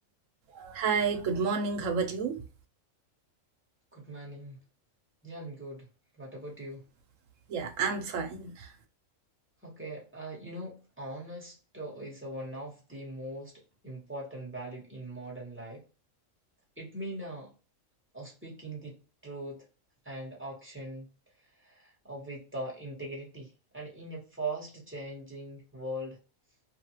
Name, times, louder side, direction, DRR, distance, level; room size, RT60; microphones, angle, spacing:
voice 1, 0.5-2.4 7.5-8.7, right 5 dB, 70° right, 1.0 m, -30 dB
voice 2, 3.9-4.6 5.2-5.8 6.2-6.8 9.6-13.5 13.8-15.9 16.8-17.5 18.1-18.9 19.2-19.7 20.0-21.1 21.6-26.2, right 1 dB, 10° right, 1.1 m, -41 dB
2.7 x 2.3 x 2.9 m
omnidirectional pair, 1.4 m